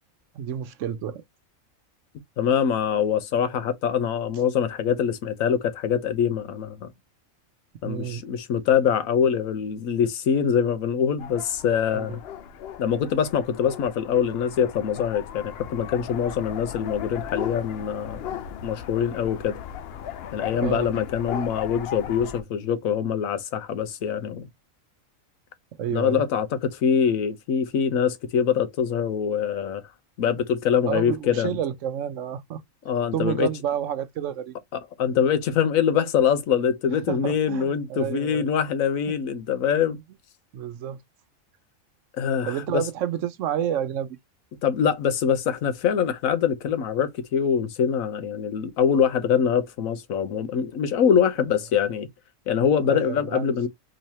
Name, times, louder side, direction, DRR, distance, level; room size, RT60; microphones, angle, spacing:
voice 1, 0.3-1.2 7.8-8.2 11.9-12.2 20.6-20.9 25.8-26.3 30.9-32.6 33.1-34.5 37.1-38.5 40.5-41.0 42.5-44.2 52.9-53.5, right 9 dB, 70° right, 0.9 m, -29 dB
voice 2, 2.4-6.9 7.8-12.2 12.8-18.2 18.6-19.6 20.3-24.5 25.9-29.8 30.2-31.5 32.9-33.5 34.7-40.0 42.1-42.8 44.6-52.1 52.5-53.7, left 7 dB, 85° left, 1.2 m, -24 dB
sound 1, 11.2-22.4, left 9 dB, 65° left, 0.6 m, -37 dB
3.9 x 3.0 x 2.7 m
omnidirectional pair, 1.4 m